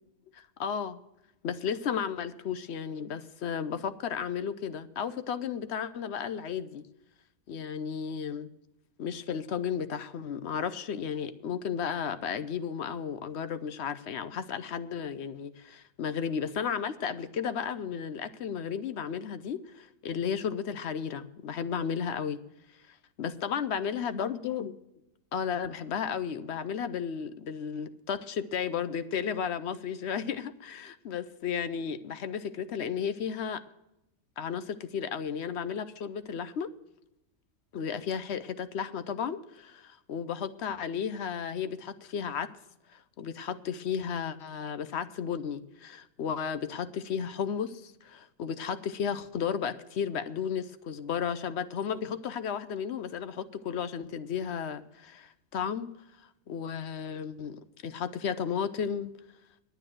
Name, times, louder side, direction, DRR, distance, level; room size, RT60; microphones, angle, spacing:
voice 1, 0.3-1.0 1.4-6.8 7.5-8.5 9.0-22.4 23.2-24.8 25.3-33.6 34.4-36.7 37.7-42.5 42.9-55.9 56.5-59.1, left 7 dB, 60° left, 13 dB, 0.8 m, -34 dB
9.5 x 9.1 x 7.7 m, 0.89 s
omnidirectional pair, 1.5 m